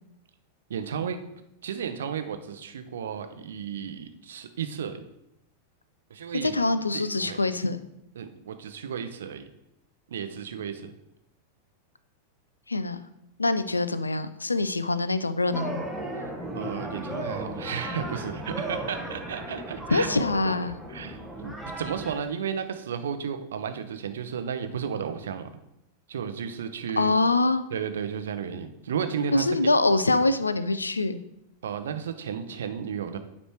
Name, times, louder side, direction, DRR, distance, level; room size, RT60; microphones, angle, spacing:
voice 1, 0.7-1.2 1.6-5.0 6.1-6.5 6.9-7.4 8.2-9.4 10.1-10.9 16.5-20.1 20.9-25.5 26.1-27.2 27.7-29.4 31.6-33.2, right 7 dB, 65° right, 8 dB, 0.6 m, -33 dB
voice 2, 6.4-7.8 12.7-13.0 13.4-15.8 19.9-20.8 27.0-27.6 29.3-31.2, left 2 dB, 80° left, 13 dB, 0.4 m, -24 dB
sound 1, 15.5-22.2, right 1 dB, ahead, 1.0 m, -35 dB
9.1 x 3.2 x 4.5 m, 0.82 s
figure-of-eight pair, 90°, 0 cm